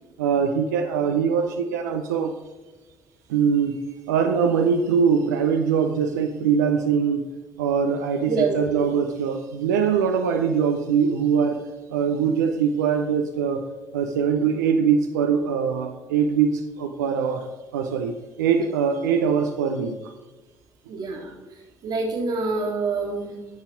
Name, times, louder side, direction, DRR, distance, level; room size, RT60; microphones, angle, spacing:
voice 1, 0.2-2.3 3.3-3.8 4.1-7.2 7.6-11.6 11.9-13.6 13.9-20.0, right 6 dB, 80° right, 4 dB, 0.6 m, -22 dB
voice 2, 8.3-8.7 20.9-21.3 21.8-23.4, right 3 dB, 55° right, -6 dB, 1.8 m, -26 dB
10.5 x 5.7 x 4.5 m, 1.2 s
figure-of-eight pair, 50°, 9 cm